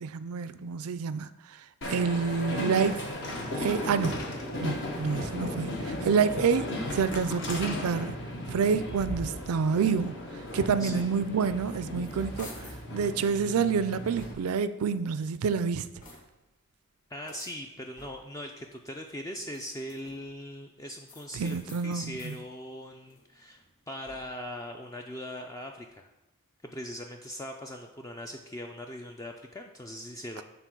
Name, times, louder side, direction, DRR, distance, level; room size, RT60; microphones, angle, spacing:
voice 1, 0.0-1.6 1.9-3.0 3.6-4.2 4.5-8.1 8.5-15.9 21.3-22.4, right 5 dB, 80° right, 0.4 m, -28 dB
Train, 1.8-14.3, left 1 dB, 55° left, 1.2 m, -36 dB
sound 1, 11.8-12.9 13.4-14.7 15.3-16.5 17.2-18.5 19.4-20.4 21.0-22.4 22.9-24.5, left 2 dB, 40° left, 1.3 m, -52 dB
voice 2, 17.1-21.6 21.8-26.1 26.6-30.4, equal, 15° left, 0.3 m, -40 dB
6.9 x 3.7 x 6.0 m
head